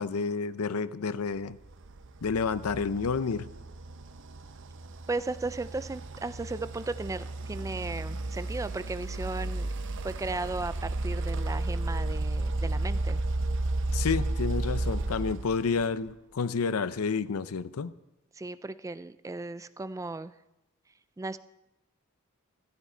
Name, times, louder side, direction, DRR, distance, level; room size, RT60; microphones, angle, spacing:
voice 1, 0.0-1.6 2.2-3.5 13.9-17.9, left 5 dB, 75° left, 16 dB, 0.6 m, -30 dB
sound 1, 1.6-16.1, right 2 dB, 60° right, 0.8 m, -33 dB
voice 2, 5.1-9.7 10.0-13.2 18.3-20.3 21.2-21.4, right 3 dB, 15° right, 14 dB, 0.3 m, -35 dB
14.5 x 12.5 x 4.5 m, 0.93 s
head